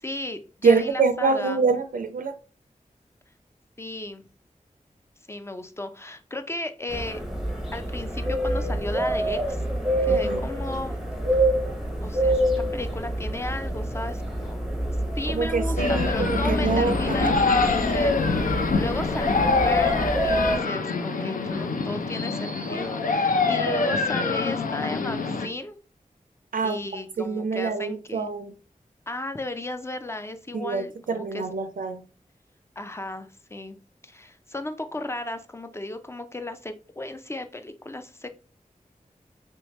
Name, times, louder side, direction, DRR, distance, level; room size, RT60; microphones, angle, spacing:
voice 1, 0.0-1.7 3.8-4.2 5.3-7.2 7.7-9.6 10.0-11.0 12.0-14.6 15.2-25.8 26.6-28.3 29.1-31.5 32.8-33.8 34.0-38.3, left 2 dB, 20° left, 0.4 m, -35 dB
voice 2, 0.6-2.4 10.1-10.4 15.3-17.3 26.5-26.8 27.2-28.5 30.5-32.0, right 4 dB, 80° right, 0.4 m, -25 dB
sound 1, 6.9-20.6, right 1 dB, ahead, 0.8 m, -27 dB
sound 2, 15.8-25.5, left 4 dB, 75° left, 0.5 m, -25 dB
3.2 x 3.2 x 3.0 m
wide cardioid pair, 70°, 14 cm